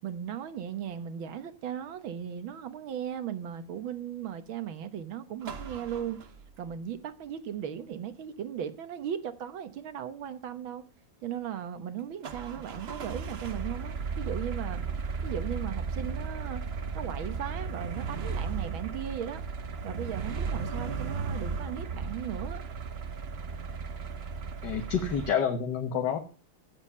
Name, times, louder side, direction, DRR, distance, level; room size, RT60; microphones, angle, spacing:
voice 1, 0.0-6.3 6.6-10.9 11.2-14.8 15.2-16.7 16.9-19.4 19.8-22.6, right 9 dB, 70° right, 1.9 m, -37 dB
sound 1, 5.4-6.7 12.2-25.3, right 5 dB, 55° right, 0.7 m, -35 dB
voice 2, 24.6-26.2, left 7 dB, 55° left, 1.7 m, -28 dB
16.0 x 7.4 x 5.5 m
omnidirectional pair, 2.3 m